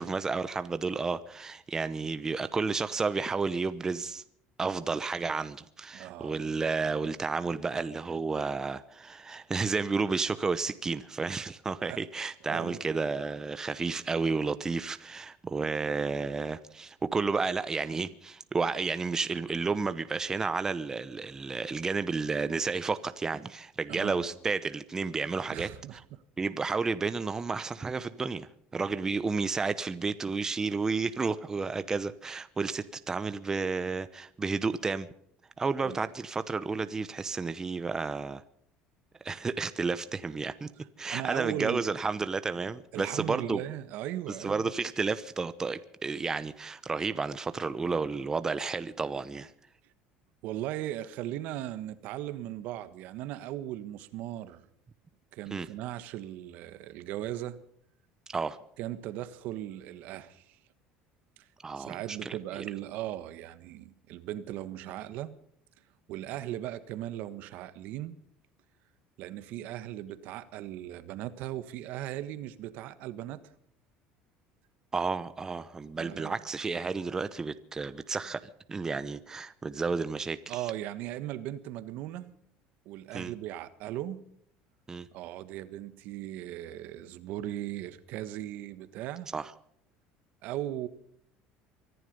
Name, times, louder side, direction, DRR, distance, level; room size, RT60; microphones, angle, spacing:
voice 1, 0.0-4.2 4.6-26.0 26.4-35.1 35.6-38.4 39.2-40.7 41.0-43.6 44.3-49.5 55.5-55.7 58.3-58.6 61.6-62.6 74.9-78.4 78.7-80.4 83.1-83.3 84.9-85.1 89.3-89.5, right 4 dB, 20° right, 0.9 m, -31 dB
voice 2, 5.9-6.4 11.9-12.0 12.5-12.8 23.9-24.2 25.5-26.2 35.8-36.0 41.1-41.8 42.9-44.7 50.4-54.7 55.3-57.6 58.8-60.6 61.4-61.5 61.8-65.3 66.1-68.2 69.2-73.4 76.0-76.4 80.5-82.3 82.8-84.2 85.1-89.3 90.4-90.9, right 13 dB, 65° right, 1.4 m, -38 dB
24.0 x 11.0 x 5.4 m
supercardioid pair, 120°, 3 cm